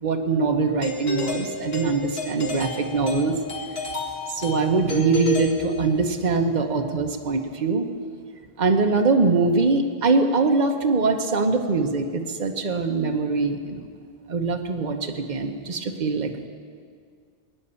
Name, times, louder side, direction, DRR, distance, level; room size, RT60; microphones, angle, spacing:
voice 1, 0.0-3.4 4.3-7.9 8.6-13.9 14.3-16.5, right 4 dB, 45° right, 4 dB, 1.1 m, -23 dB
Doorbell, 0.8-6.2, left 4 dB, 75° left, 2.3 m, -32 dB
20.0 x 9.9 x 7.0 m, 2.1 s
omnidirectional pair, 1.0 m